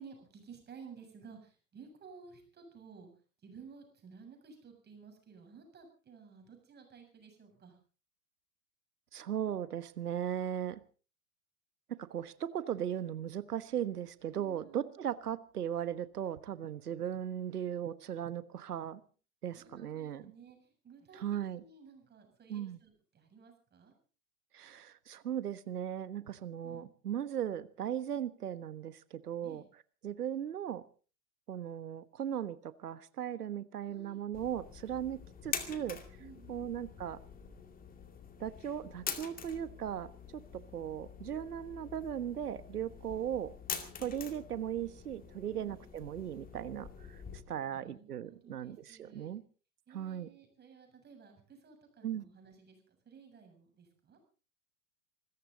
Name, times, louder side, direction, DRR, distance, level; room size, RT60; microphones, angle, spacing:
voice 1, 0.0-3.1 3.4-7.8 14.3-15.0 19.5-24.0 26.6-26.9 29.4-29.6 33.8-34.2 36.2-36.6 45.5-45.8 47.4-49.3 49.9-54.2, right 5 dB, 20° right, 4 dB, 7.3 m, -55 dB
voice 2, 9.1-10.8 12.0-19.0 19.4-20.3 21.1-21.6 22.5-22.8 24.5-29.6 30.0-30.8 31.5-36.0 36.5-37.2 38.4-43.5 44.0-47.2 47.5-49.4 49.9-50.3 52.0-52.3, right 10 dB, 80° right, 15 dB, 1.5 m, -38 dB
sound 1, 34.3-47.4, left 7 dB, 20° left, 2.3 m, -45 dB
25.5 x 14.0 x 4.0 m, 0.37 s
hypercardioid pair, 105°, 46 cm